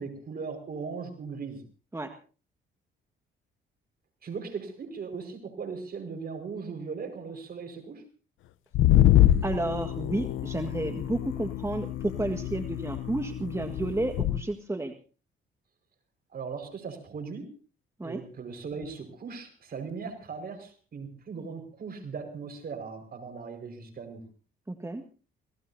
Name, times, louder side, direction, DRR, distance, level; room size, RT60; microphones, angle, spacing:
voice 1, 0.0-1.6 4.2-8.0 16.3-17.6 18.0-24.2, right 5 dB, 50° right, 6 dB, 5.2 m, -38 dB
sound 1, 8.7-14.4, left 13 dB, 85° left, 0.8 m, -25 dB
voice 2, 9.4-14.9 18.0-18.2 24.7-25.0, right 2 dB, 15° right, 5 dB, 1.7 m, -31 dB
27.5 x 18.0 x 2.8 m, 0.37 s
cardioid pair, 90°, 20 cm